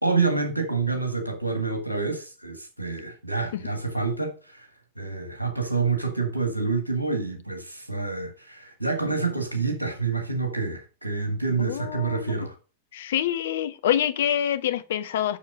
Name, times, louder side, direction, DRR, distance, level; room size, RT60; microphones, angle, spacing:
voice 1, 0.0-4.7 5.0-12.6, right 4 dB, 85° right, 2.1 m, -27 dB
voice 2, 11.6-12.5 12.9-15.4, left 10 dB, 60° left, 0.9 m, -26 dB
7.2 x 6.4 x 5.4 m
figure-of-eight pair, 90°, 0 cm